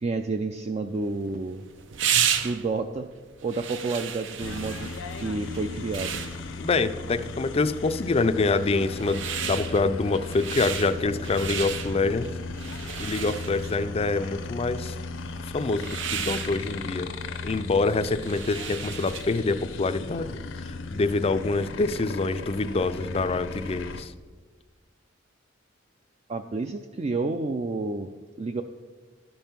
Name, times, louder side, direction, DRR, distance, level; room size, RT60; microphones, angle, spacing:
voice 1, 0.0-1.6 2.4-3.1 3.4-4.9 5.2-6.2 26.3-28.1 28.4-28.6, right 3 dB, 35° right, 7 dB, 0.4 m, -30 dB
sound 1, 0.9-19.5, right 8 dB, 70° right, 0.7 m, -34 dB
sound 2, 4.4-24.0, left 3 dB, 80° left, 0.7 m, -37 dB
voice 2, 6.6-12.3 13.0-15.0 15.4-17.1 17.4-24.1, left 3 dB, 30° left, 12 dB, 0.4 m, -26 dB
12.5 x 5.4 x 5.9 m, 1.4 s
head